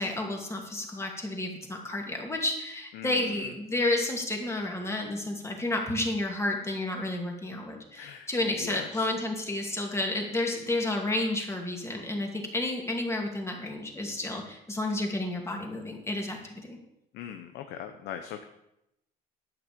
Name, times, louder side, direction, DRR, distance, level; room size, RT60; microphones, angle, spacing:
voice 1, 0.0-16.8, left 2 dB, 15° left, 1 dB, 2.5 m, -31 dB
voice 2, 2.9-3.5 7.9-9.1 17.1-18.4, left 9 dB, 80° left, 7 dB, 0.9 m, -41 dB
11.0 x 9.0 x 5.2 m, 0.85 s
cardioid pair, 110°, 17 cm